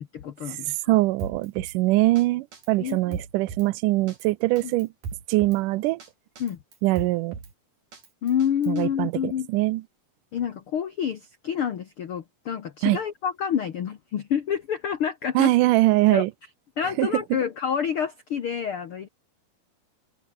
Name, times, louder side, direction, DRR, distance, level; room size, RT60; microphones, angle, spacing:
voice 1, 0.1-1.0 2.8-3.2 4.6-4.7 6.4-6.6 8.2-9.5 10.3-15.5 16.1-16.2 16.8-19.1, left 8 dB, 90° left, 1.2 m, -28 dB
voice 2, 0.9-4.9 5.3-6.0 6.8-7.4 8.7-9.8 12.8-13.0 15.4-16.3 17.0-17.2, right 18 dB, 85° right, 1.9 m, -22 dB
Drum kit, 1.2-1.8 2.2-2.3 2.5-3.7 4.1-4.2 4.6-5.6 6.0-6.1 6.4-7.5 7.9-8.8, right 5 dB, 50° right, 5.9 m, -38 dB
omnidirectional pair, 4.5 m